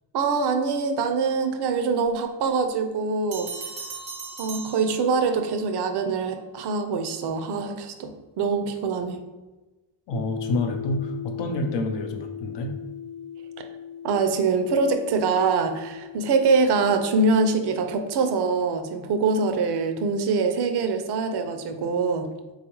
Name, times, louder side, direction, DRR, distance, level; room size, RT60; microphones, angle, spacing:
voice 1, 0.1-3.5 4.4-9.2 14.0-22.3, right 4 dB, 65° right, 6 dB, 0.5 m, -24 dB
sound 1, 3.3-5.5, right 4 dB, 85° right, 0.9 m, -38 dB
voice 2, 10.1-12.8, left 2 dB, 70° left, 4 dB, 0.6 m, -28 dB
sound 2, 10.1-19.0, left 8 dB, 15° left, 0.5 m, -39 dB
3.6 x 2.4 x 2.9 m, 1.1 s
cardioid pair, 70°, 44 cm